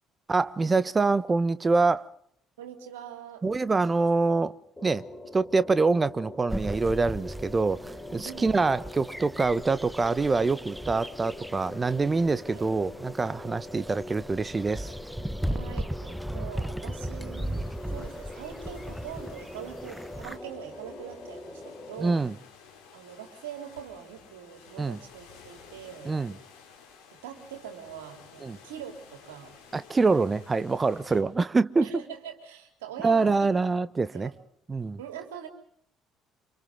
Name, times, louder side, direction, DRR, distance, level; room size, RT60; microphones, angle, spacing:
voice 1, 0.3-2.1 3.4-4.5 4.8-5.0 5.3-14.9 22.0-22.3 24.8-25.0 26.1-26.3 28.4-28.6 29.7-31.9 33.0-34.3 34.7-35.0, right 3 dB, 25° right, 1.2 m, -25 dB
voice 2, 2.6-3.4 8.2-8.6 12.5-12.7 15.5-22.2 22.9-26.2 27.2-29.5 31.1-31.3 31.8-33.5 34.1-34.3 35.0-35.5, right 9 dB, 70° right, 3.7 m, -43 dB
sound 1, 4.8-22.1, left 2 dB, 15° left, 5.5 m, -43 dB
sound 2, 6.5-20.4, right 1 dB, 5° right, 1.0 m, -37 dB
sound 3, 17.4-31.2, left 6 dB, 65° left, 5.7 m, -53 dB
30.0 x 27.0 x 3.9 m
figure-of-eight pair, 50°, 0 cm